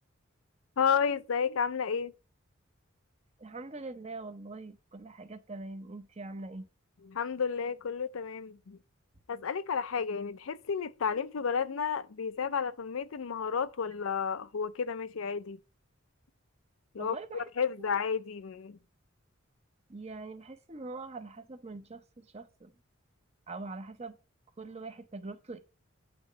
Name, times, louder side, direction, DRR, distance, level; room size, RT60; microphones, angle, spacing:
voice 1, 0.8-2.1 7.0-8.8 9.3-15.6 16.9-18.8, left 6 dB, 80° left, 0.5 m, -32 dB
voice 2, 3.4-6.7 17.0-17.5 17.8-17.9 19.9-22.7 23.5-24.2 24.6-25.6, right 3 dB, 30° right, 0.8 m, -43 dB
8.8 x 3.1 x 6.5 m
head